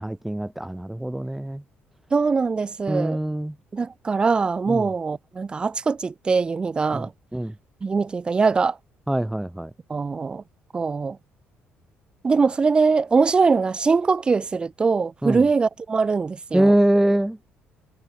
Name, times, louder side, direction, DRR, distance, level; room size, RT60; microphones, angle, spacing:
voice 1, 0.0-1.6 2.9-3.6 4.7-4.8 6.9-7.5 9.1-9.7 15.2-15.4 16.5-17.4, right 1 dB, 5° right, 0.7 m, -23 dB
voice 2, 2.1-3.2 3.7-7.1 7.8-8.8 9.9-10.4 10.7-11.2 12.2-16.7, right 4 dB, 25° right, 2.5 m, -22 dB
cardioid pair, 145°, 4 cm